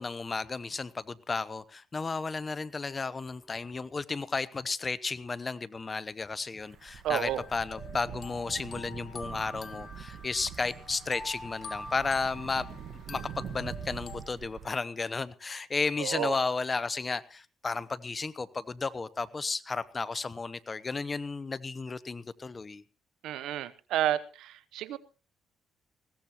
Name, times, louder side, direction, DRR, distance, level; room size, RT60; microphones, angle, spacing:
voice 1, 0.0-22.8, left 4 dB, 30° left, 0.8 m, -33 dB
sound 1, 6.2-6.3 7.2-14.2, left 3 dB, 50° left, 1.5 m, -46 dB
sound 2, 6.6-14.7, right 8 dB, 70° right, 1.4 m, -44 dB
voice 2, 7.0-7.4 16.0-16.3 23.2-25.0, right 12 dB, 85° right, 0.8 m, -31 dB
20.5 x 16.5 x 3.0 m
cardioid pair, 90°, 0 cm